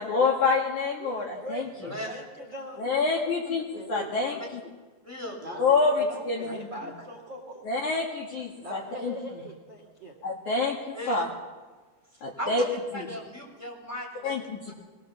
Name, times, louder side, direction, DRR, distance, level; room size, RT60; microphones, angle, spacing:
voice 1, 0.0-1.6 2.8-4.6 5.6-6.7 7.6-9.1 10.2-11.3 12.2-12.6 12.9-13.1 14.2-14.7, left 4 dB, 55° left, -1 dB, 3.1 m, -27 dB
voice 2, 1.0-2.8 3.7-4.2 5.4-7.7 8.6-10.2, right 1 dB, 30° right, 1 dB, 2.7 m, -41 dB
voice 3, 1.8-2.2 4.3-4.4 5.0-5.7 10.9-11.2 12.4-14.4, equal, 5° left, -2 dB, 7.0 m, -37 dB
23.0 x 21.0 x 7.3 m, 1.3 s
omnidirectional pair, 4.6 m